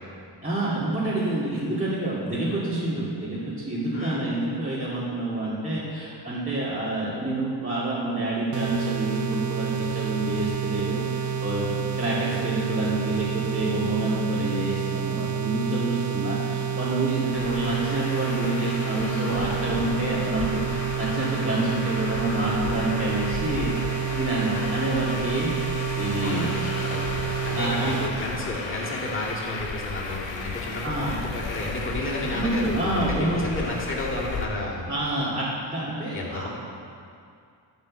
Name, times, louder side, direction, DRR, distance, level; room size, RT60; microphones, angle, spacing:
voice 1, 0.4-25.6 26.0-26.5 27.5-27.9 30.8-31.1 32.3-33.7 34.9-36.5, right 2 dB, 15° right, -10 dB, 2.7 m, -28 dB
voice 2, 3.9-4.2 26.1-34.9 36.1-36.5, left 1 dB, 25° left, -5 dB, 2.5 m, -32 dB
sound 1, 8.5-28.1, right 8 dB, 40° right, 0.7 m, -29 dB
Traffic noise roadway noise, 17.3-34.4, left 4 dB, 70° left, 1.3 m, -34 dB
10.5 x 4.3 x 7.3 m, 2.4 s
supercardioid pair, 55°, 47 cm